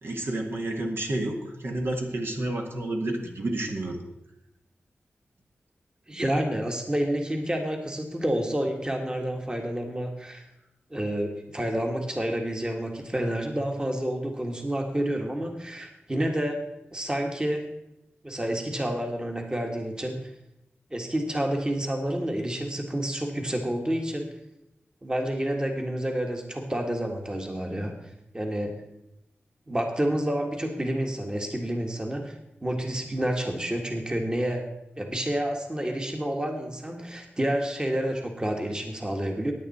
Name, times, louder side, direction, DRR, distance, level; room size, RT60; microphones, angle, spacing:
voice 1, 0.0-4.0, right 1 dB, 60° right, 2 dB, 1.8 m, -30 dB
voice 2, 6.1-10.5 10.9-16.6 16.9-17.7 18.2-20.3 20.9-24.3 25.0-28.0 28.3-28.8 29.7-32.3 32.6-34.7 35.0-39.5, right 1 dB, 20° right, 3 dB, 1.6 m, -29 dB
15.5 x 9.8 x 4.2 m, 0.87 s
wide cardioid pair, 110°, 4 cm